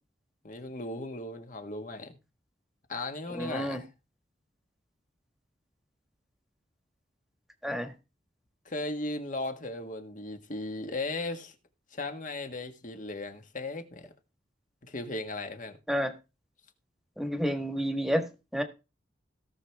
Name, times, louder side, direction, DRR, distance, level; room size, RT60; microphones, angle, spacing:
voice 1, 0.4-2.2 2.9-3.9 8.6-11.5 11.9-14.1 14.8-15.8, left 2 dB, 45° left, 1.7 m, -36 dB
voice 2, 3.3-3.8 7.6-7.9 15.9-16.1 17.2-18.6, equal, ahead, 1.5 m, -30 dB
17.5 x 6.5 x 3.5 m
head